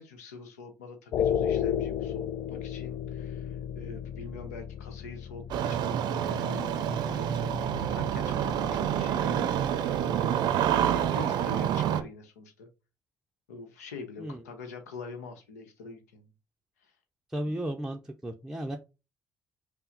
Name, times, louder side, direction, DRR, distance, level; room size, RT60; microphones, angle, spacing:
voice 1, 0.0-10.0 10.6-12.7 13.5-16.3 16.8-16.9 18.6-18.7, left 4 dB, 80° left, 7 dB, 0.9 m, -45 dB
sound 1, 1.1-11.3, left 9 dB, 55° left, 0.4 m, -35 dB
Engine starting, 5.5-12.0, right 10 dB, 60° right, 0.5 m, -28 dB
voice 2, 17.3-18.8, right 1 dB, 5° right, 2 dB, 0.7 m, -34 dB
5.5 x 2.1 x 3.9 m, 0.29 s
figure-of-eight pair, 45°, 8 cm